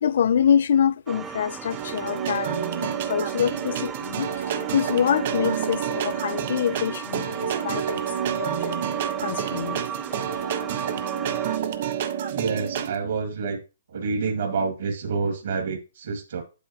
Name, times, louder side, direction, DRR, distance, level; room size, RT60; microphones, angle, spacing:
voice 1, 0.0-4.3 4.7-8.8 9.2-9.8, left 8 dB, 60° left, 0.4 m, -25 dB
sound 1, 1.1-11.6, right 7 dB, 10° right, 0.5 m, -36 dB
sound 2, 1.7-12.9, right 9 dB, 45° right, 1.1 m, -29 dB
voice 2, 12.3-13.6 13.9-16.4, right 4 dB, 65° right, 2.0 m, -28 dB
8.8 x 8.2 x 2.9 m
hypercardioid pair, 160°, 0 cm